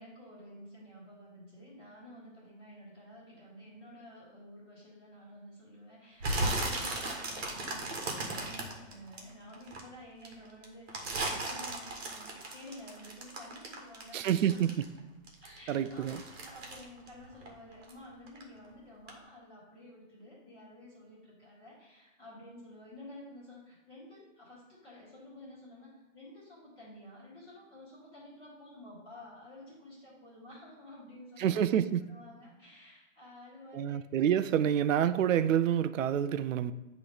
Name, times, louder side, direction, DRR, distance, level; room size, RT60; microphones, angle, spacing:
voice 1, 0.0-14.8 15.4-34.0 34.5-34.7, left 1 dB, 10° left, 2.1 m, -51 dB
sound 1, 6.2-9.8 10.2-15.0 15.3-18.0 18.3-18.7 19.1-19.2, right 2 dB, 50° right, 1.4 m, -36 dB
voice 2, 14.1-14.7 15.7-16.2 31.4-32.0 33.7-36.7, right 9 dB, 70° right, 0.5 m, -27 dB
8.5 x 3.2 x 4.9 m
hypercardioid pair, 170°, 40 cm